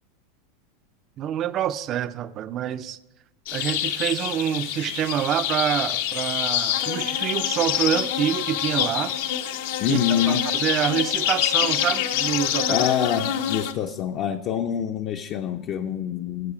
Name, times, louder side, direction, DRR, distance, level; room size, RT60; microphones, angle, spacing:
voice 1, 1.2-3.0 3.5-9.1 9.9-10.0 10.3-12.8, right 10 dB, 35° right, 0.4 m, -26 dB
sound 1, 3.5-13.7, left 10 dB, 70° left, 0.8 m, -26 dB
voice 2, 9.8-10.4 12.7-16.5, left 9 dB, 40° left, 0.5 m, -26 dB
14.5 x 4.8 x 4.9 m
supercardioid pair, 145°, 0 cm